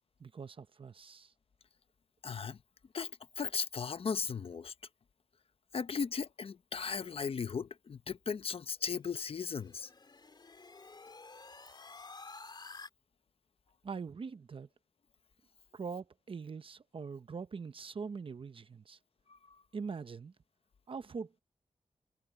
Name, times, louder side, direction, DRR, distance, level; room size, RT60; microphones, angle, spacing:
voice 1, 0.2-1.3 13.8-14.7 15.7-19.0 19.7-20.3 20.9-21.4, right 5 dB, 50° right, 0.8 m, -43 dB
voice 2, 2.2-2.6 2.9-4.7 5.7-9.9 19.3-19.6, left 6 dB, 55° left, 0.8 m, -37 dB
sound 1, 8.9-12.9, left 3 dB, 40° left, 3.5 m, -51 dB
wide cardioid pair, 110°, 12 cm